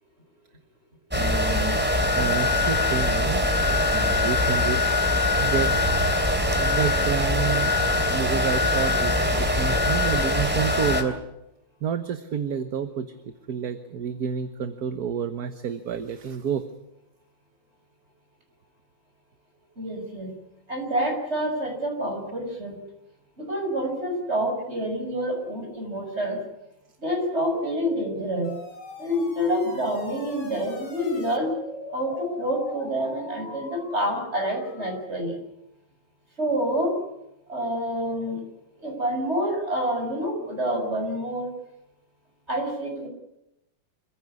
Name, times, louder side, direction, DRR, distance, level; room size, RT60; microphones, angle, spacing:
sound 1, 1.1-11.0, left 2 dB, 5° right, 2.8 m, -23 dB
voice 1, 1.1-4.8 5.4-6.1 6.5-11.2 11.8-13.1 13.5-16.7, right 7 dB, 55° right, 9 dB, 1.6 m, -29 dB
voice 2, 19.8-20.3 20.7-22.8 23.4-26.4 27.0-28.5 29.0-31.6 31.9-35.4 36.4-37.0 37.5-38.4 38.8-41.5 42.5-43.1, equal, 30° right, 2 dB, 6.9 m, -27 dB
sound 2, 27.5-35.0, left 2 dB, 60° left, 3.7 m, -42 dB
26.5 x 15.5 x 9.7 m, 0.87 s
omnidirectional pair, 2.1 m